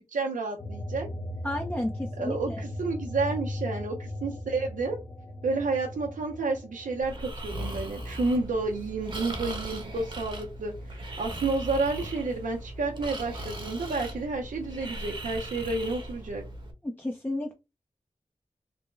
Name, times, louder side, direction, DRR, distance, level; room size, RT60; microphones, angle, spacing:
voice 1, 0.1-1.1 2.2-5.0 5.4-16.4, right 3 dB, 80° right, 1 dB, 0.6 m, -30 dB
sound 1, 0.6-11.5 11.9-13.3, left 1 dB, 45° left, 0.9 m, -39 dB
voice 2, 1.4-2.6 16.8-17.5, left 1 dB, 15° left, 2 dB, 0.5 m, -32 dB
Breathing, 7.0-16.7, right 1 dB, 35° right, 1.0 m, -38 dB
3.3 x 2.1 x 3.2 m, 0.26 s
cardioid pair, 45°, 13 cm